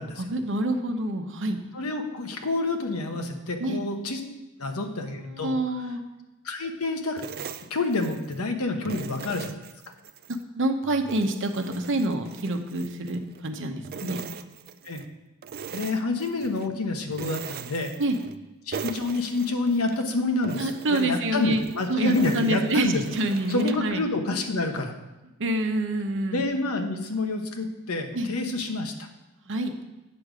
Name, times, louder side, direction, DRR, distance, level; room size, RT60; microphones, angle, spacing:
voice 1, 0.2-1.6 3.6-3.8 4.6-4.7 5.2-6.0 10.6-14.2 18.0-18.2 20.6-24.0 25.4-26.5 28.1-28.3 29.5-29.8, right 1 dB, 60° right, 6 dB, 0.8 m, -27 dB
voice 2, 1.7-4.2 4.6-5.6 6.4-7.2 7.7-9.5 14.0-14.1 14.8-15.0 15.7-17.9 18.7-23.0 23.5-24.9 26.3-28.9, left 2 dB, 80° left, 5 dB, 1.0 m, -28 dB
Chain Drum, 7.2-8.4 8.9-10.4 10.8-13.5 13.8-15.1 15.4-16.7 17.1-18.4 18.7-20.0 20.4-23.9, right 6 dB, 45° right, 0.4 m, -40 dB
8.6 x 6.6 x 4.9 m, 1.1 s
head